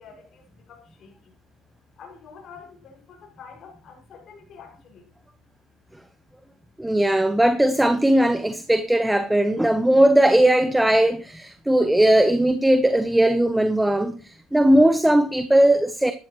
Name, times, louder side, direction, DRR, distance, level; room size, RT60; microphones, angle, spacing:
voice 1, 0.0-1.3 2.0-5.1, left 6 dB, 50° left, 5.6 m, -47 dB
voice 2, 6.8-16.1, right 1 dB, 5° right, 0.8 m, -18 dB
13.0 x 12.5 x 3.0 m
cardioid pair, 110°, 0 cm